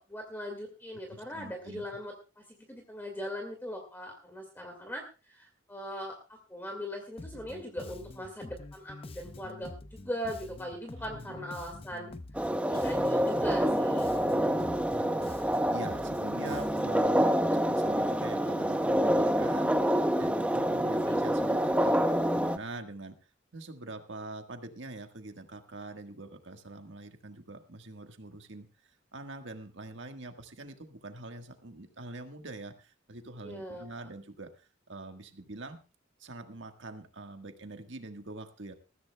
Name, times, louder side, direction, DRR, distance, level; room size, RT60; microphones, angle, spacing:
voice 1, 0.0-14.1 20.8-21.1 33.4-34.1, equal, 10° left, 2 dB, 2.0 m, -40 dB
voice 2, 1.1-1.8 11.1-11.5 14.1-23.2 23.5-28.7 29.1-35.8 36.2-38.7, right 2 dB, 70° right, 6 dB, 1.5 m, -44 dB
Bass guitar, 7.2-17.1, left 2 dB, 30° left, 0.7 m, -46 dB
sound 1, 12.4-22.6, equal, 5° right, 0.6 m, -27 dB
Guitar, 12.7-14.4, right 2 dB, 50° left, 4.5 m, -49 dB
20.0 x 14.5 x 2.3 m, 0.31 s
head